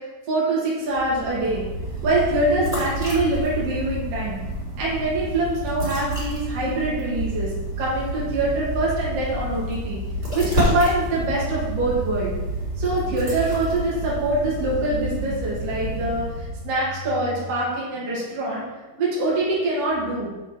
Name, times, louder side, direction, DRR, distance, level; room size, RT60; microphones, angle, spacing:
voice 1, 0.3-1.6 2.0-4.4 4.8-10.0 10.3-12.3 12.8-18.6 19.0-20.3, right 2 dB, 50° right, -6 dB, 2.8 m, -24 dB
sound 1, 0.9-16.8, right 1 dB, 20° right, 3.0 m, -29 dB
8.0 x 6.3 x 4.3 m, 1.1 s
omnidirectional pair, 4.0 m